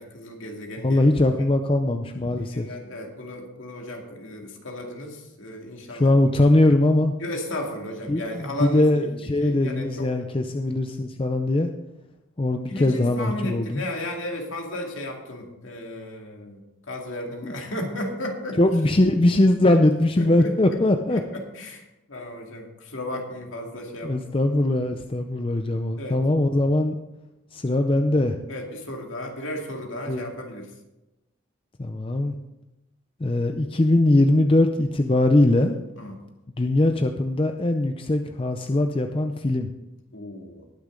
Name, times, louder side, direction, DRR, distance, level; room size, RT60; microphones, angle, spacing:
voice 1, 0.0-1.3 2.4-6.1 7.2-10.1 12.7-16.6 16.9-18.6 20.1-20.8 21.1-24.2 26.0-26.2 28.5-30.7 36.0-36.1 40.1-40.6, left 1 dB, 70° left, 1 dB, 2.2 m, -34 dB
voice 2, 0.8-2.7 5.9-7.1 8.1-11.7 12.4-13.8 17.4-17.9 18.6-21.2 24.0-27.0 27.5-28.4 30.1-30.3 31.8-32.4 33.2-35.8 36.6-39.7, left 1 dB, 25° left, 6 dB, 0.5 m, -21 dB
19.5 x 6.6 x 3.8 m, 0.95 s
head